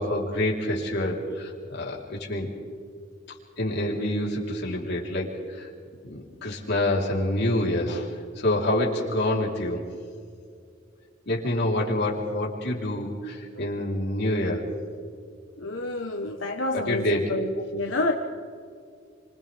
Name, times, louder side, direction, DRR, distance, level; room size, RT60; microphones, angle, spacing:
voice 1, 0.0-2.5 3.6-5.7 6.0-8.1 8.4-9.8 11.3-14.6 16.7-17.3, left 1 dB, 60° left, -2 dB, 3.9 m, -27 dB
voice 2, 15.6-17.4 17.7-18.1, left 2 dB, 90° left, 1 dB, 1.3 m, -28 dB
30.0 x 26.0 x 3.6 m, 2.2 s
head